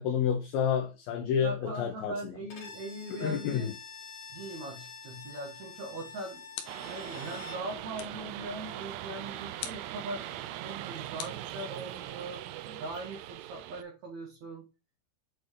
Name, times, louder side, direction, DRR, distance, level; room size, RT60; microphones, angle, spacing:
voice 1, 0.0-2.3 3.1-3.7, left 8 dB, 75° left, 2.4 m, -30 dB
voice 2, 1.4-3.7 4.3-6.4 6.8-14.7, right 2 dB, 55° right, 2.3 m, -41 dB
Bowed string instrument, 2.5-7.7, left 5 dB, 45° left, 2.4 m, -47 dB
sound 1, 6.5-7.1 8.0-8.3 9.6-10.0 11.2-12.1, left 10 dB, 90° left, 3.1 m, -44 dB
sound 2, 6.7-13.8, right 13 dB, 85° right, 2.7 m, -41 dB
7.8 x 4.4 x 3.1 m
omnidirectional pair, 4.8 m